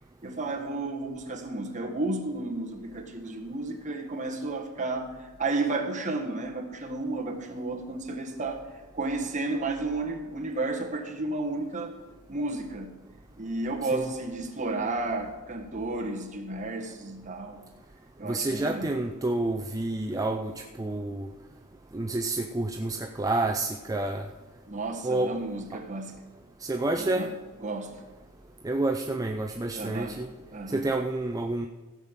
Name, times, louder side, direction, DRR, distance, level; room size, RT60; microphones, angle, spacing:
voice 1, 0.2-8.6 8.9-11.9 12.3-12.9 13.4-17.6 18.2-18.9 24.7-26.2 27.0-27.3 27.6-28.0 29.7-30.2 30.5-30.8, right 2 dB, 35° right, 1.5 m, -32 dB
voice 2, 18.3-20.5 20.8-21.3 21.9-24.3 25.0-25.4 26.6-27.3 28.6-30.3 30.7-31.7, right 2 dB, 15° right, 0.5 m, -29 dB
15.5 x 5.3 x 7.4 m
head